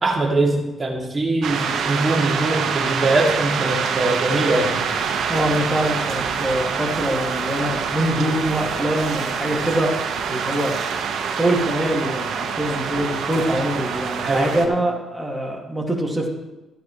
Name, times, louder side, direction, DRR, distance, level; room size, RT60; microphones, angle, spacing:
voice 1, 0.0-4.8 13.5-13.6 14.2-14.7, right 2 dB, 30° right, -1 dB, 2.6 m, -22 dB
sound 1, 1.4-14.7, right 6 dB, 75° right, 1.4 m, -25 dB
voice 2, 5.3-9.9 10.3-10.8 11.4-16.3, right 1 dB, 5° right, -2 dB, 2.4 m, -24 dB
14.5 x 9.4 x 3.3 m, 1.1 s
cardioid pair, 90°, 0 cm